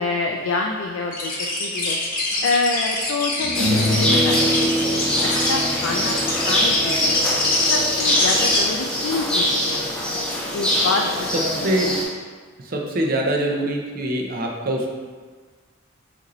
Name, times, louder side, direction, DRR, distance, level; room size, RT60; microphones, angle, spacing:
voice 1, 0.0-1.3 1.6-2.0 2.4-6.1 6.5-7.1 7.7-10.3 10.5-12.0, left 3 dB, 80° left, 2 dB, 0.3 m, -27 dB
sound 1, 1.1-8.6, left 2 dB, 45° left, 0.7 m, -24 dB
sound 2, 2.3-2.4 3.4-8.6, equal, 85° right, 1.3 m, -26 dB
sound 3, 3.5-12.0, equal, 5° left, 0.6 m, -23 dB
voice 2, 12.6-14.9, right 1 dB, 45° right, 0 dB, 0.5 m, -23 dB
5.0 x 2.6 x 3.0 m, 1.5 s
head